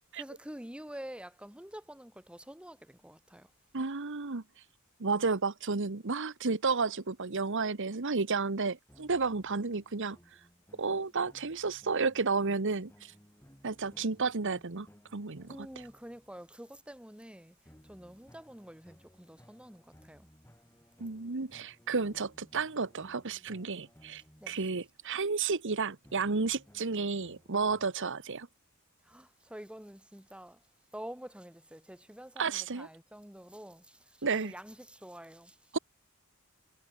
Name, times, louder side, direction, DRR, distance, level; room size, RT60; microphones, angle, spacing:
voice 1, 0.1-3.5 15.5-20.3 24.4-24.6 29.0-30.7 30.9-35.8, equal, 5° right, 2.1 m, -48 dB
voice 2, 3.7-4.4 5.0-10.2 10.8-13.1 13.6-14.9 15.1-15.6 21.0-28.5 32.4-32.9 34.2-34.5 35.7-35.8, right 4 dB, 60° right, 1.2 m, -32 dB
sound 1, 8.9-16.5 17.7-25.2 26.0-27.9, equal, 10° left, 6.1 m, -61 dB
head